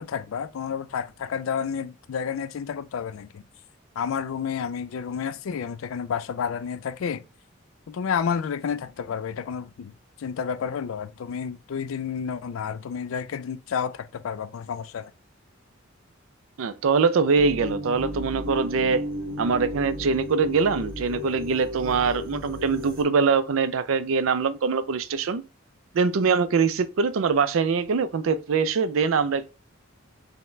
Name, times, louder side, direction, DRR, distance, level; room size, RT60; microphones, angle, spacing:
voice 1, 0.0-3.5 4.0-7.2 7.9-15.1, left 7 dB, 80° left, 0.4 m, -30 dB
voice 2, 16.6-19.0 19.4-25.4 25.9-29.5, right 5 dB, 80° right, 0.4 m, -23 dB
sound 1, 17.3-23.0, left 2 dB, 45° right, 1.2 m, -34 dB
5.6 x 2.1 x 3.1 m
head